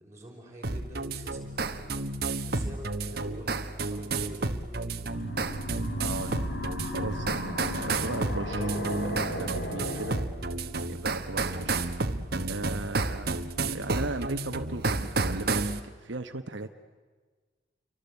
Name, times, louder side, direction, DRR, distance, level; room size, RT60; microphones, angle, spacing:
voice 1, 0.0-5.1 11.4-11.7, right 1 dB, 15° right, -2 dB, 6.0 m, -47 dB
sound 1, 0.6-15.8, right 3 dB, 50° right, 1.2 m, -31 dB
sound 2, 5.1-10.2, left 1 dB, 55° left, 3.1 m, -35 dB
voice 2, 6.0-6.5 6.8-10.2 10.9-11.7 12.4-13.4 13.7-16.7, right 2 dB, 75° right, 6 dB, 1.1 m, -37 dB
sound 3, 8.6-11.6, right 2 dB, 15° left, 4.4 m, -41 dB
29.0 x 24.0 x 8.3 m, 1.4 s
head